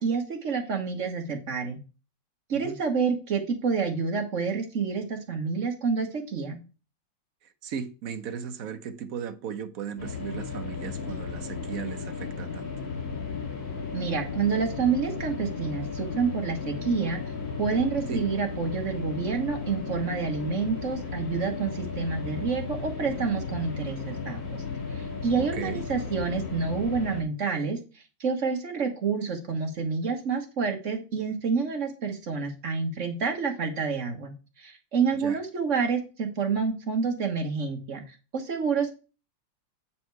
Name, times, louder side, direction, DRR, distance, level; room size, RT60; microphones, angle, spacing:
voice 1, 0.0-1.8 2.5-6.6 13.9-17.2 17.6-24.6 24.9-27.8 28.2-38.9, right 5 dB, 45° right, 1.4 m, -28 dB
voice 2, 7.4-12.7 18.1-18.2 25.4-25.8 35.1-35.4, right 7 dB, 60° right, 1.0 m, -36 dB
sound 1, 10.0-27.2, left 5 dB, 85° left, 2.6 m, -35 dB
8.6 x 4.2 x 4.6 m
omnidirectional pair, 2.0 m